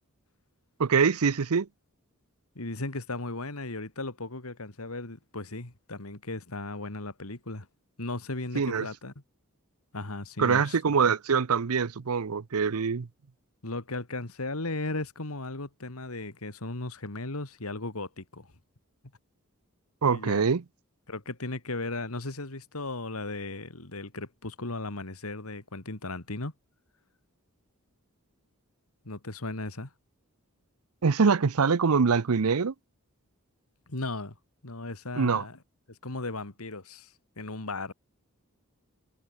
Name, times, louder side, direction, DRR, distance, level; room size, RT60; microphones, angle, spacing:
voice 1, 0.8-1.7 8.5-8.9 10.4-13.1 20.0-20.6 31.0-32.7 35.2-35.4, right 5 dB, 80° right, 0.6 m, -24 dB
voice 2, 2.6-7.7 8.0-9.1 9.9-10.8 13.6-18.5 20.1-20.4 21.1-26.5 29.0-29.9 33.9-34.3 34.6-35.6 35.9-37.1 37.4-37.9, left 2 dB, 75° left, 2.5 m, -36 dB
head